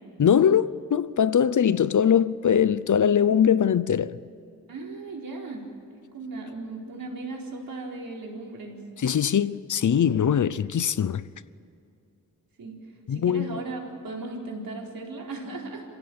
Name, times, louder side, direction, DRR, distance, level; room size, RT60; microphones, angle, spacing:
voice 1, 0.2-4.2 9.0-11.2 13.1-13.6, left 8 dB, 60° left, 0.7 m, -22 dB
voice 2, 4.7-5.6 5.9-8.8 12.6-12.8 13.1-15.8, right 3 dB, 90° right, 4.5 m, -37 dB
27.5 x 16.0 x 8.8 m
wide cardioid pair, 110°, 34 cm